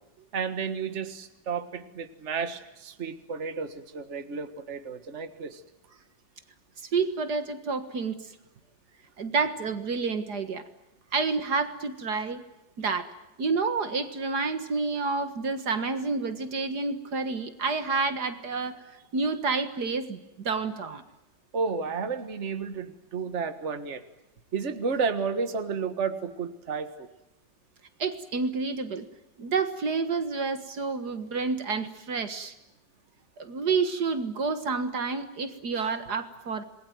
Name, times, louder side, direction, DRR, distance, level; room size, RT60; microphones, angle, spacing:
voice 1, 0.3-5.6 21.5-24.0 24.5-27.1, right 5 dB, 40° right, 9 dB, 1.9 m, -32 dB
voice 2, 6.8-8.3 9.2-10.6 11.1-12.4 12.8-13.1 13.4-18.8 19.1-21.0 28.0-29.1 29.4-32.5 33.4-36.6, right 4 dB, 65° right, 10 dB, 2.1 m, -29 dB
27.5 x 20.5 x 9.3 m, 0.94 s
omnidirectional pair, 1.9 m